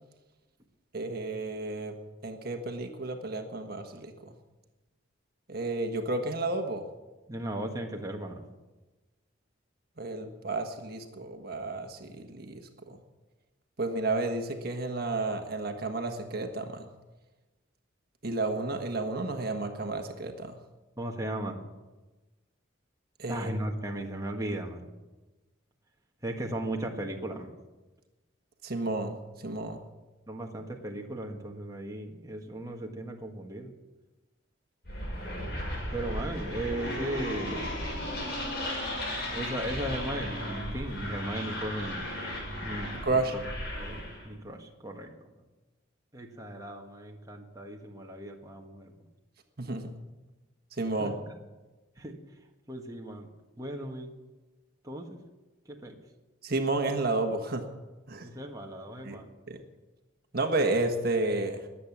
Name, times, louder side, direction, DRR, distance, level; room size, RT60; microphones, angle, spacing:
voice 1, 0.9-2.0 2.2-4.3 5.5-6.8 10.0-13.0 13.8-16.9 18.2-20.5 23.2-23.5 28.6-29.8 43.0-43.3 49.6-49.9 50.7-51.2 56.4-57.6 58.1-58.3 59.0-59.2 59.5-59.6 60.3-61.7, right 2 dB, 50° right, 5 dB, 1.4 m, -31 dB
voice 2, 7.3-8.4 21.0-21.6 23.3-24.8 26.2-27.5 30.3-33.7 35.9-37.7 39.3-42.0 42.6-43.2 43.7-45.1 46.1-48.9 51.0-51.1 52.0-52.1 52.7-53.3 53.6-54.1 54.8-55.2 55.7-56.0 58.2-59.3, right 1 dB, 15° right, 1 dB, 1.5 m, -36 dB
sound 1, 34.8-44.2, left 1 dB, 50° left, 6.7 m, -35 dB
21.5 x 8.5 x 7.3 m, 1.2 s
head